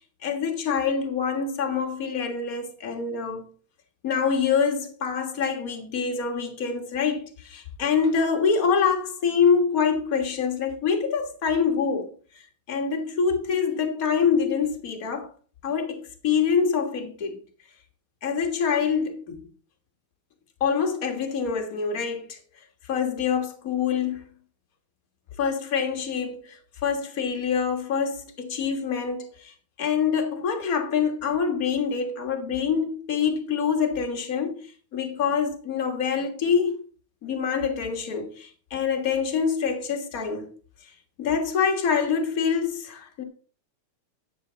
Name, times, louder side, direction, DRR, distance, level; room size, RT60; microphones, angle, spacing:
voice 1, 0.2-3.5 4.0-12.1 12.7-15.3 15.6-17.4 18.2-19.5 20.6-22.4 22.9-24.2 25.4-36.8 37.2-40.5 41.2-43.2, left 6 dB, 35° left, 1.6 m, -25 dB
10.5 x 8.0 x 4.0 m
omnidirectional pair, 3.3 m